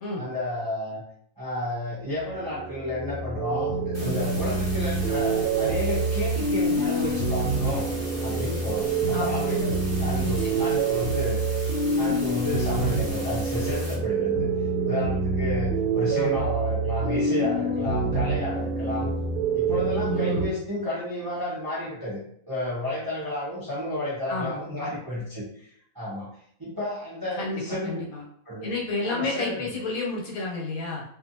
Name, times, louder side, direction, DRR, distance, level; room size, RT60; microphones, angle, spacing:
voice 1, 0.2-1.0 1.4-7.9 8.2-11.4 12.0-14.4 14.8-19.1 19.5-22.2 22.5-25.7 25.9-26.3 26.6-28.0 28.5-28.7 29.0-29.6, left 1 dB, 20° right, -8 dB, 0.6 m, -31 dB
sound 1, 2.1-20.5, right 3 dB, 75° right, 1.0 m, -26 dB
sound 2, 3.9-13.9, equal, 15° left, 0.7 m, -40 dB
voice 2, 9.1-9.6 10.2-10.7 16.1-16.4 20.1-20.5 24.3-25.0 27.4-28.2 28.6-31.0, left 3 dB, 75° left, -3 dB, 1.3 m, -31 dB
2.6 x 2.6 x 2.6 m, 0.65 s
omnidirectional pair, 1.5 m